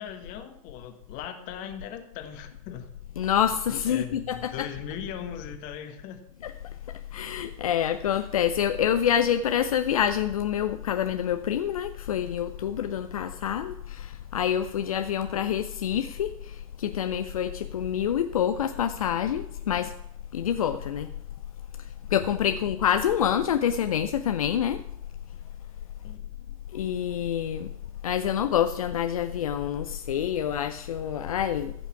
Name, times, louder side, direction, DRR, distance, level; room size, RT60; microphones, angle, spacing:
voice 1, 0.0-2.9 3.9-6.3 26.0-26.2, left 8 dB, 50° left, 8 dB, 1.5 m, -39 dB
voice 2, 3.2-4.7 6.4-6.5 6.9-19.9 20.3-21.1 21.8-24.8 26.7-27.7 28.0-31.7, left 9 dB, 80° left, 9 dB, 0.5 m, -27 dB
15.0 x 5.6 x 5.8 m, 0.74 s
hypercardioid pair, 90°, 18 cm